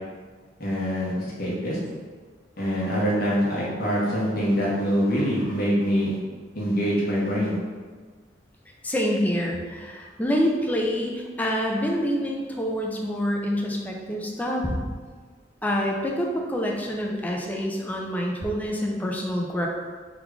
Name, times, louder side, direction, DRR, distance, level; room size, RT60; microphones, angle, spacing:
voice 1, 0.6-1.8 2.6-6.2 6.5-7.5, equal, 55° left, -6 dB, 1.2 m, -24 dB
voice 2, 8.8-15.0 15.6-19.7, equal, 10° left, -1 dB, 0.4 m, -26 dB
3.6 x 2.4 x 4.6 m, 1.5 s
head